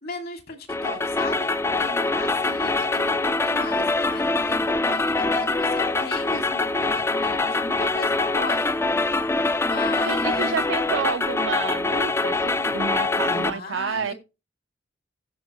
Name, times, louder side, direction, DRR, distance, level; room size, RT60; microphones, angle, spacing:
voice 1, 0.0-8.9 9.6-10.6 13.2-14.1, left 3 dB, 55° left, 2.3 m, -36 dB
sound 1, 0.7-13.5, left 3 dB, 15° left, 0.4 m, -24 dB
voice 2, 10.1-14.1, right 6 dB, 85° right, 0.5 m, -30 dB
15.5 x 5.4 x 3.0 m
head